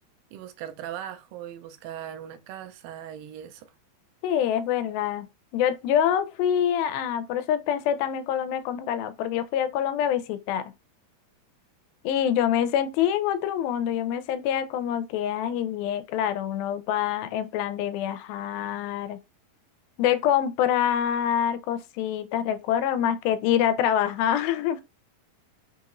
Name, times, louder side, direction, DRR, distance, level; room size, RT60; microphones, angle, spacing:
voice 1, 0.3-3.7, right 10 dB, 80° right, 2.2 m, -39 dB
voice 2, 4.2-5.3 5.5-10.6 12.0-19.2 20.0-24.8, left 10 dB, 85° left, 2.4 m, -25 dB
5.7 x 2.9 x 2.4 m
omnidirectional pair, 4.2 m